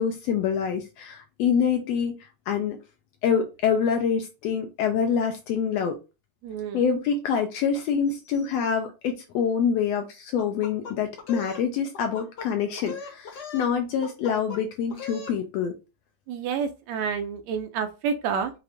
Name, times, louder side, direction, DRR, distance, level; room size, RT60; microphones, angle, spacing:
voice 1, 0.0-2.1 2.5-2.8 3.2-6.0 6.7-15.7, left 7 dB, 80° left, 5 dB, 1.5 m, -26 dB
voice 2, 6.4-6.8 16.3-18.5, right 6 dB, 80° right, 7 dB, 1.7 m, -29 dB
sound 1, 10.4-11.6 11.9-12.5 12.8-13.7 14.0-14.6 14.9-15.4, left 5 dB, 55° left, 1.1 m, -39 dB
6.2 x 2.5 x 3.3 m, 0.29 s
omnidirectional pair, 3.4 m